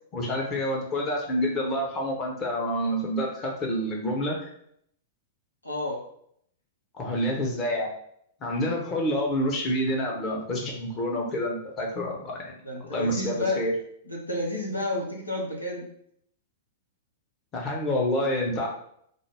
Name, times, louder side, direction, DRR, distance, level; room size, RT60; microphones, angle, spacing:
voice 1, 0.1-4.5 7.0-7.9 8.4-12.5 12.9-13.7 17.5-18.7, equal, 30° left, -1 dB, 0.9 m, -28 dB
voice 2, 5.6-6.1 12.6-13.6 14.0-15.9, left 2 dB, 90° left, -1 dB, 0.7 m, -30 dB
3.9 x 2.0 x 3.4 m, 0.68 s
figure-of-eight pair, 105°, 0 cm